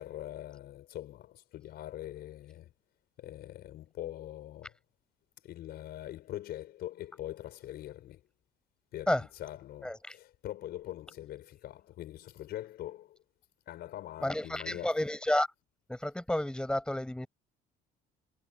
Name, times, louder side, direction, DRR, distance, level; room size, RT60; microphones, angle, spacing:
voice 1, 0.0-2.7 3.2-4.8 5.4-8.2 8.9-13.2 13.7-15.0, left 13 dB, 70° left, 5.3 m, -43 dB
voice 2, 9.8-10.1 14.2-15.5 15.9-17.3, left 1 dB, 5° left, 6.5 m, -31 dB
cardioid pair, 110°, 17 cm